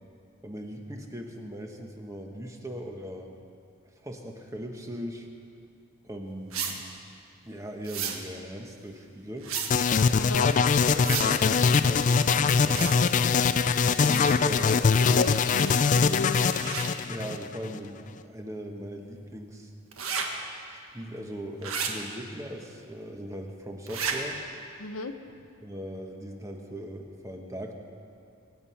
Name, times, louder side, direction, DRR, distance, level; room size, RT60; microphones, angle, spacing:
voice 1, 0.4-3.3 4.0-5.3 6.0-6.8 7.4-9.5 10.9-13.0 14.0-15.0 17.1-19.7 20.7-24.4 25.3-27.7, equal, 15° right, 2 dB, 1.2 m, -39 dB
sound 1, 6.5-6.7 7.8-8.2 9.4-9.7 11.0-11.3 12.6-13.0 14.0-14.4 15.6-15.9 16.5-16.9 19.9-20.2 21.6-21.9 23.9-24.1, right 7 dB, 80° right, 1.6 m, -32 dB
sound 2, 9.7-17.8, left 5 dB, 35° left, 0.3 m, -23 dB
voice 2, 10.1-10.5 15.0-16.4 24.8-25.1, left 3 dB, 80° left, 8 dB, 0.8 m, -33 dB
24.0 x 9.3 x 5.8 m, 2.5 s
head